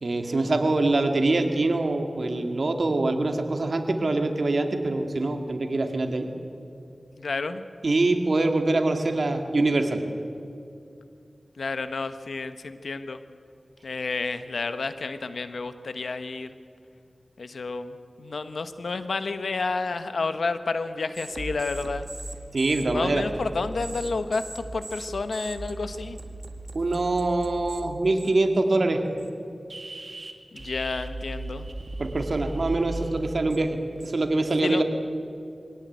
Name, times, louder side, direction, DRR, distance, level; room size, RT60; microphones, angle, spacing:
voice 1, 0.0-6.3 7.8-10.0 22.5-23.2 26.7-29.0 32.0-33.7 34.0-34.8, right 2 dB, 65° right, 5 dB, 2.4 m, -24 dB
voice 2, 7.2-7.6 11.6-13.2 13.8-16.5 17.4-22.1 22.9-26.2 30.5-31.7 34.6-34.8, left 3 dB, 90° left, 10 dB, 1.1 m, -30 dB
sound 1, 21.1-27.8 28.2-28.5 29.2-29.3 29.7-34.3, right 2 dB, 50° right, 2.2 m, -38 dB
23.5 x 17.0 x 9.4 m, 2.5 s
wide cardioid pair, 60°, 0 cm